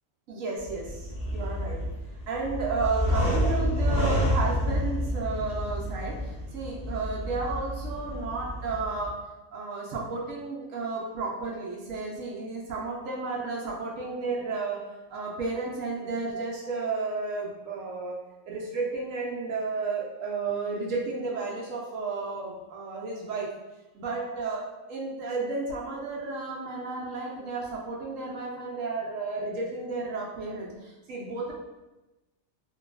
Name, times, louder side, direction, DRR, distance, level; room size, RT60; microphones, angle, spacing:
voice 1, 0.3-1.8 2.3-9.2 9.5-14.8 15.1-18.2 18.5-23.5 23.9-31.5, right 3 dB, 75° right, -3 dB, 1.0 m, -32 dB
sound 1, 0.6-9.1, equal, 40° left, 0.6 m, -29 dB
3.0 x 2.6 x 2.3 m, 1.0 s
omnidirectional pair, 1.4 m